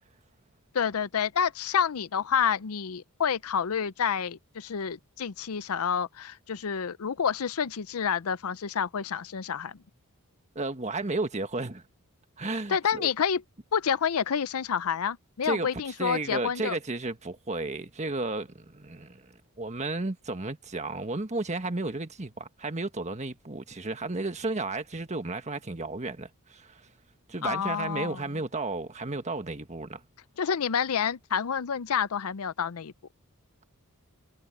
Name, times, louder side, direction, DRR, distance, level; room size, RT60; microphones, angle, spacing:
voice 1, 0.7-9.8 12.7-13.4 13.7-16.8 27.4-28.2 30.4-32.9, left 7 dB, 75° left, 0.6 m, -28 dB
voice 2, 10.5-11.8 12.4-13.1 15.4-26.9 27.3-30.0, right 2 dB, 30° right, 1.5 m, -33 dB
head